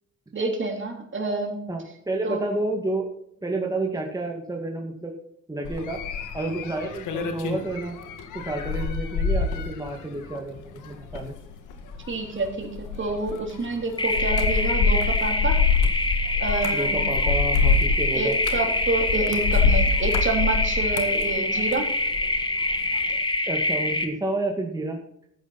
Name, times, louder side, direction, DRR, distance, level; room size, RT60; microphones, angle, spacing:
voice 1, 0.3-1.6 2.2-2.6 12.1-15.6 16.4-17.0 18.1-21.9, right 3 dB, 40° right, 3 dB, 3.3 m, -28 dB
voice 2, 1.7-3.0 3.4-5.1 5.5-6.0 6.3-8.0 8.3-11.4 16.7-18.4 23.5-25.0, right 2 dB, 10° right, 1 dB, 2.1 m, -30 dB
sound 1, 5.6-22.4 22.7-23.1, left 5 dB, 85° left, 2.0 m, -26 dB
sound 2, 14.0-24.0, left 2 dB, 15° left, 2.0 m, -25 dB
13.0 x 9.1 x 4.2 m, 0.73 s
cardioid pair, 90°, 30 cm